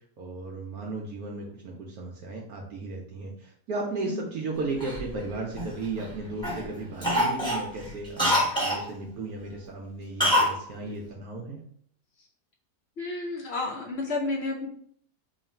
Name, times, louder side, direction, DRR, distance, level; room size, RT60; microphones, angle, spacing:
voice 1, 0.2-11.6, right 3 dB, 70° right, -1 dB, 1.0 m, -35 dB
Cough, 4.8-6.1 6.4-6.7 7.0-8.8 10.2-10.6 10.8-10.9, equal, 5° left, 0.6 m, -25 dB
voice 2, 13.0-14.7, left 3 dB, 65° left, -1 dB, 0.6 m, -31 dB
3.1 x 2.4 x 4.2 m, 0.64 s
omnidirectional pair, 1.8 m